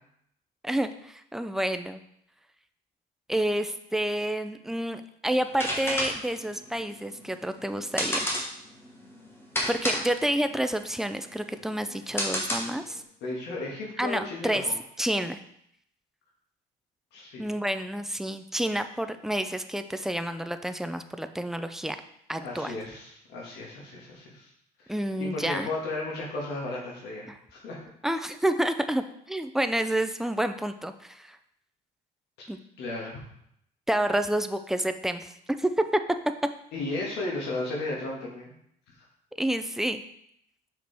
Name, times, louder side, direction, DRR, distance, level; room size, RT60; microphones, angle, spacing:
voice 1, 0.6-2.0 3.3-8.2 9.7-13.0 14.0-14.6 15.0-15.4 17.4-22.0 22.3-22.7 24.9-25.7 28.0-31.4 32.5-32.6 33.9-35.7 39.4-40.0, right 1 dB, ahead, 9 dB, 0.4 m, -29 dB
sound 1, 5.4-13.0, equal, 15° left, 1.3 m, -32 dB
voice 2, 13.2-14.8 17.1-17.4 22.4-24.5 24.8-27.8 32.4-32.5 32.8-33.2 36.7-38.5, left 2 dB, 80° left, -3 dB, 1.8 m, -34 dB
6.0 x 5.0 x 3.4 m, 0.72 s
cardioid pair, 110°, 17 cm